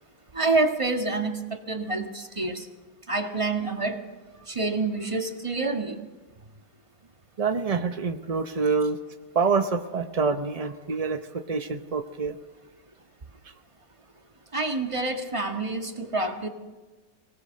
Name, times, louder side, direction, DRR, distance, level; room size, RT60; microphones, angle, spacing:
voice 1, 0.3-2.7 3.1-4.0 4.5-6.0 14.5-16.5, right 3 dB, 20° right, 5 dB, 1.6 m, -27 dB
voice 2, 7.4-9.0 9.3-12.4, right 5 dB, 70° right, 8 dB, 0.3 m, -26 dB
24.0 x 18.0 x 6.5 m, 1.3 s
omnidirectional pair, 2.0 m